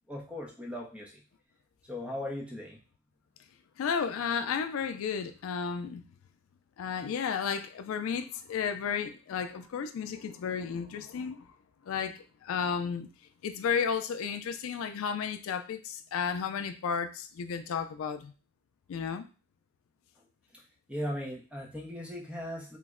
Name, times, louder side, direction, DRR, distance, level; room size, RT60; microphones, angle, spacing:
voice 1, 0.1-1.2 1.9-2.8 20.9-22.8, left 1 dB, 5° right, 0.5 m, -38 dB
voice 2, 3.8-6.0 6.8-11.5 11.9-13.1 13.4-18.3 18.9-19.2, left 6 dB, 75° left, 0.3 m, -33 dB
3.1 x 2.1 x 3.5 m
head